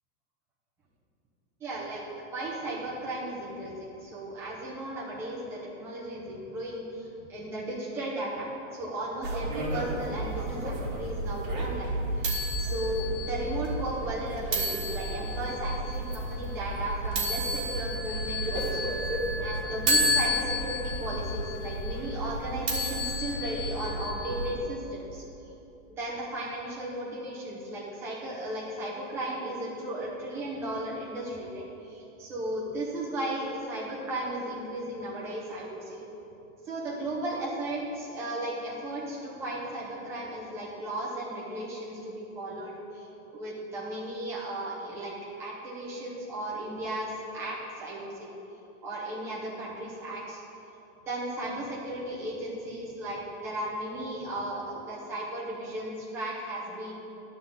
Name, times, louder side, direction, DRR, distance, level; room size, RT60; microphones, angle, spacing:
voice 1, 1.6-2.0 2.3-18.8 19.4-25.2 26.0-36.0 36.6-43.1 43.3-48.3 48.8-50.4 51.1-56.9, right 1 dB, 5° right, -6 dB, 0.6 m, -35 dB
sound 1, 9.2-24.5, equal, 30° right, 1.7 m, -31 dB
11.0 x 3.9 x 7.0 m, 3.0 s
supercardioid pair, 180°, 41 cm